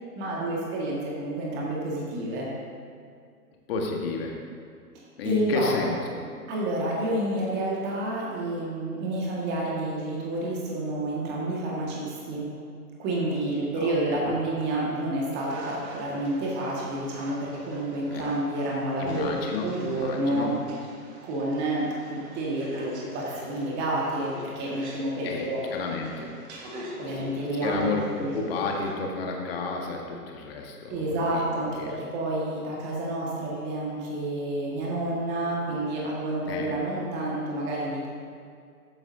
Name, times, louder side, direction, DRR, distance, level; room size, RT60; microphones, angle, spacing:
voice 1, 0.2-2.5 5.2-5.9 6.5-12.5 13.0-20.5 21.2-25.6 27.0-28.3 30.9-38.1, right 1 dB, 25° right, -4 dB, 1.8 m, -29 dB
voice 2, 3.7-4.3 5.2-6.2 13.8-13.9 18.1-18.3 19.0-19.6 19.9-20.5 24.8-26.3 27.6-31.0 31.3-32.0 36.5-36.7, left 4 dB, 40° left, 1 dB, 1.6 m, -31 dB
sound 1, 15.3-28.9, right 1 dB, 45° right, 2.0 m, -45 dB
14.0 x 9.0 x 2.7 m, 2.2 s
figure-of-eight pair, 125°, 46 cm